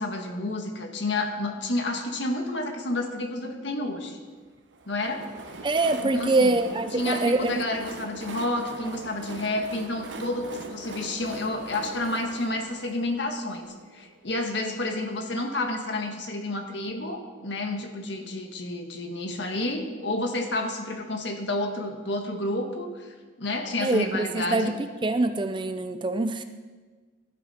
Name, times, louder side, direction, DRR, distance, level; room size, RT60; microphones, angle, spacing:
voice 1, 0.0-4.2 4.9-5.2 6.0-6.5 6.9-23.1 23.4-24.7, left 2 dB, 65° left, 4 dB, 1.6 m, -30 dB
Train, 4.7-14.4, right 3 dB, 70° right, 1.1 m, -41 dB
voice 2, 5.6-7.6 23.8-24.7 25.0-26.4, right 2 dB, 25° right, 9 dB, 0.5 m, -24 dB
17.0 x 12.0 x 4.3 m, 1.4 s
head